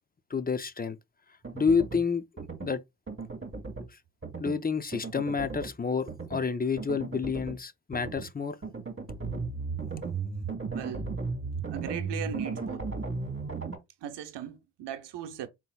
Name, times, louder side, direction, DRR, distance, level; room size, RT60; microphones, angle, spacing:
voice 1, 0.3-1.0 1.5-2.2 2.6-2.8 4.4-8.6, left 5 dB, 20° left, 0.6 m, -29 dB
sound 1, 1.4-2.0 2.4-2.7 3.1-3.9 4.2-4.6 4.9-5.7 6.1-6.4 6.8-7.6 7.9-8.3 8.6-13.8, right 4 dB, 30° right, 1.7 m, -36 dB
voice 2, 10.7-11.1 11.7-12.9 14.0-15.5, right 10 dB, 80° right, 0.8 m, -38 dB
4.3 x 3.7 x 2.3 m
supercardioid pair, 45°, 42 cm